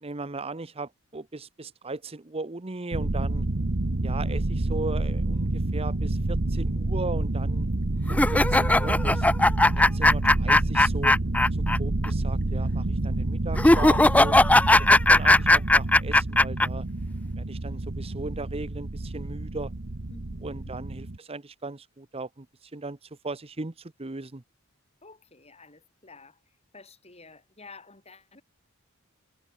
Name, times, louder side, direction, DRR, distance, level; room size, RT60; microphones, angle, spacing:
voice 1, 0.0-3.4 4.0-7.7 8.1-9.3 9.9-11.2 11.8-14.4 14.9-16.9 17.4-19.7 20.4-24.4, right 3 dB, 25° right, 0.9 m, -37 dB
sound 1, 2.9-21.2, right 2 dB, 50° right, 1.2 m, -28 dB
sound 2, 8.1-11.8 12.0-12.1 13.6-16.7, left 2 dB, 5° left, 0.4 m, -18 dB
voice 2, 20.1-20.8 25.0-28.4, left 3 dB, 30° left, 6.8 m, -51 dB
head